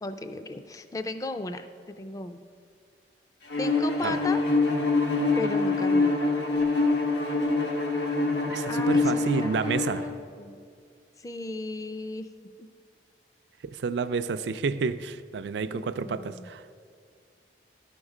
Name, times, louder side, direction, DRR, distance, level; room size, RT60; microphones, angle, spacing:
voice 1, 0.0-2.4 3.6-4.4 5.3-6.2 8.7-10.6 11.2-12.3 12.6-12.7 15.7-16.5, left 2 dB, 20° left, 10 dB, 0.3 m, -36 dB
Bowed string instrument, 3.5-10.1, left 3 dB, 80° left, 1.2 m, -25 dB
voice 2, 8.4-10.0 13.7-16.6, right 5 dB, 85° right, 12 dB, 0.4 m, -30 dB
12.5 x 5.3 x 4.9 m, 2.2 s
head